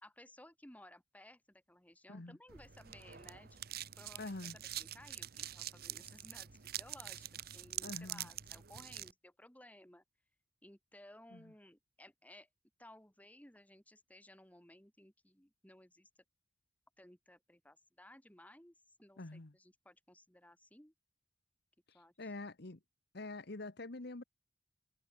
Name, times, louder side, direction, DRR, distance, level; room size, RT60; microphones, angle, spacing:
voice 1, 0.0-3.6 4.0-10.0 10.6-12.5 12.8-16.1 17.0-20.9 21.9-22.3, left 1 dB, 10° left, 3.0 m, -59 dB
sound 1, 2.5-9.1, right 12 dB, 55° right, 1.0 m, -46 dB
voice 2, 4.2-4.6 7.8-8.3 11.3-11.4 19.2-19.5 21.9-22.8 23.1-24.2, left 2 dB, 60° left, 1.3 m, -46 dB
head